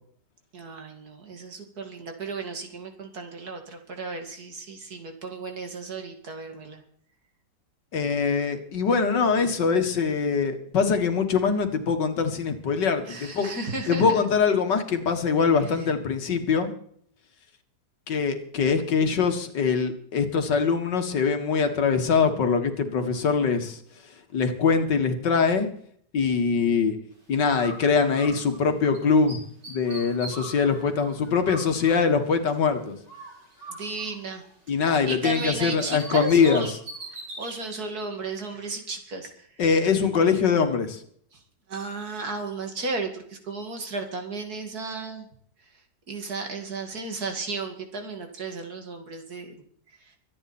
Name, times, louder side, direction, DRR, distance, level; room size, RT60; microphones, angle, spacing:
voice 1, 0.5-6.8 13.1-14.2 15.8-15.9 33.7-34.4 35.0-36.7 37.1-39.6 41.3-41.4 41.7-45.3 46.1-49.6 50.0-50.2, right 3 dB, 60° right, 4 dB, 2.8 m, -34 dB
voice 2, 7.9-13.5 13.9-16.7 18.1-23.8 24.3-25.7 26.1-27.0 27.3-29.4 29.7-33.0 34.7-36.7 39.6-41.0, left 5 dB, 85° left, 7 dB, 2.4 m, -23 dB
Bird, 27.4-29.0 29.3-32.7 33.1-35.2 35.4-37.6, right 2 dB, 80° right, 6.8 m, -42 dB
24.0 x 9.3 x 4.3 m, 0.62 s
omnidirectional pair, 1.8 m